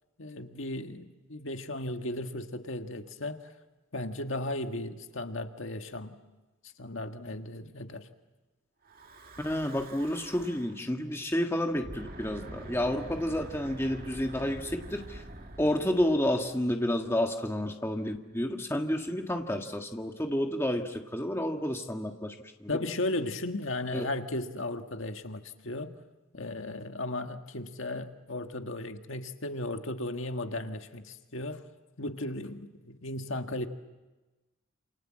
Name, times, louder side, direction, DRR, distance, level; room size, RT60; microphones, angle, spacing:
voice 1, 0.2-3.4 3.9-6.1 6.8-8.1 22.7-25.9 26.3-31.6 32.0-33.7, left 2 dB, 70° left, 6 dB, 1.7 m, -35 dB
Breathing / Wind, 8.8-10.8 11.7-17.1, right 1 dB, 45° right, 2.0 m, -46 dB
voice 2, 9.4-15.2 15.6-22.3 22.6-22.7 23.9-24.1, left 1 dB, 10° left, 3 dB, 1.6 m, -30 dB
28.5 x 28.0 x 7.6 m, 1.1 s
head